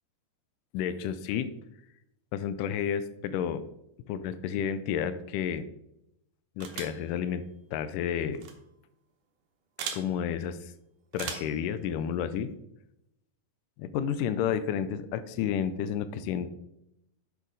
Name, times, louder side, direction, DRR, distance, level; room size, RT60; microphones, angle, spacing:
voice 1, 0.7-1.5 2.3-3.6 4.1-5.7 6.6-7.4 7.7-8.5 9.9-10.7 11.1-12.5 13.8-16.5, left 8 dB, 80° left, 12 dB, 2.0 m, -31 dB
sound 1, 6.6-7.0 8.3-8.5 9.8-10.0 11.1-11.6, right 6 dB, 70° right, 2.5 m, -37 dB
8.1 x 6.0 x 3.9 m, 0.82 s
omnidirectional pair, 4.0 m